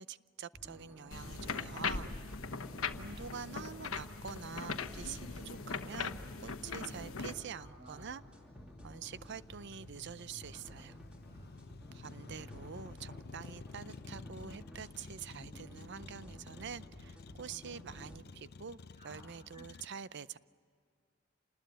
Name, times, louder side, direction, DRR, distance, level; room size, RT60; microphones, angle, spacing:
voice 1, 0.0-2.1 3.0-8.2 8.8-11.0 11.9-20.4, right 7 dB, 55° right, 16 dB, 0.6 m, -46 dB
sound 1, 0.5-18.2, equal, 5° right, 2.8 m, -54 dB
sound 2, 1.1-7.3, left 5 dB, 85° left, 1.1 m, -40 dB
voice 2, 1.6-2.0 7.5-8.1 10.5-10.6 11.3-11.6 15.3-15.8 19.0-19.2 19.5-19.6, equal, 30° right, -4 dB, 5.3 m, -55 dB
Motor vehicle (road), 6.7-19.9, left 4 dB, 50° left, 0.6 m, -53 dB
27.5 x 20.0 x 9.2 m, 2.2 s
head